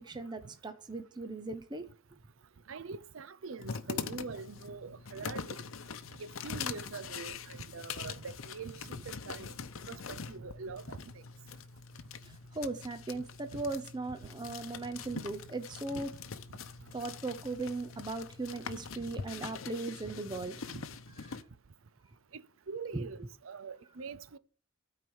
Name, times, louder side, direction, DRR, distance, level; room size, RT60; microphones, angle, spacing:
voice 1, 0.0-1.9 12.2-16.1 16.9-20.7 21.2-21.4 22.9-23.1, right 3 dB, 20° right, 0.6 m, -38 dB
voice 2, 2.7-5.6 6.2-9.5 9.9-11.0 13.5-13.6 15.1-15.2 15.9-16.1 20.0-20.1 20.7-20.9 22.3-22.4 22.7-24.4, right 4 dB, 75° right, 0.6 m, -44 dB
sound 1, 3.6-21.4, left 5 dB, 80° left, 0.7 m, -43 dB
12.5 x 4.7 x 6.3 m
head